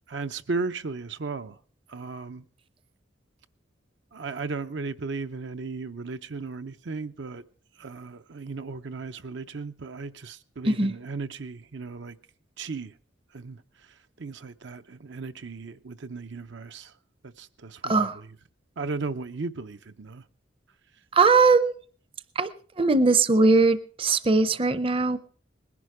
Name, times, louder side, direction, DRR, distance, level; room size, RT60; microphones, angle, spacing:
voice 1, 0.1-1.6 1.9-2.4 4.1-7.4 7.8-12.2 12.6-12.9 13.3-13.6 14.2-16.9 17.2-18.3 18.8-20.2, right 4 dB, 75° right, 0.7 m, -35 dB
voice 2, 17.8-18.2 21.1-21.7 22.4-22.5 22.8-25.2, right 3 dB, 30° right, 0.6 m, -20 dB
20.0 x 11.0 x 4.9 m
head